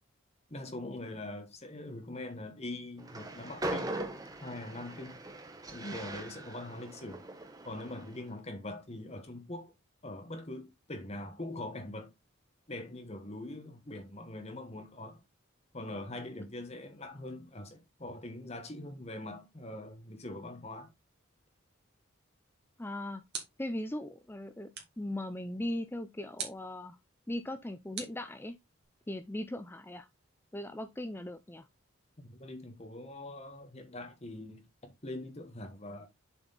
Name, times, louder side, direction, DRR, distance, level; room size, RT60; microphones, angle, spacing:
voice 1, 0.5-4.0 4.4-5.2 5.7-7.3 7.6-9.7 10.0-12.1 12.7-15.2 15.7-20.9 32.2-36.1, left 1 dB, 30° left, 1.2 m, -43 dB
Train, 3.0-8.3, right 1 dB, 20° right, 1.0 m, -41 dB
sound 1, 22.6-23.8 24.7-25.1 26.4-26.7 27.9-28.8, right 6 dB, 50° right, 2.2 m, -43 dB
voice 2, 22.8-23.2 23.6-24.7 25.0-27.0 27.3-28.6 29.1-30.1 30.5-31.7, left 1 dB, 10° left, 0.5 m, -38 dB
7.1 x 4.4 x 4.0 m
head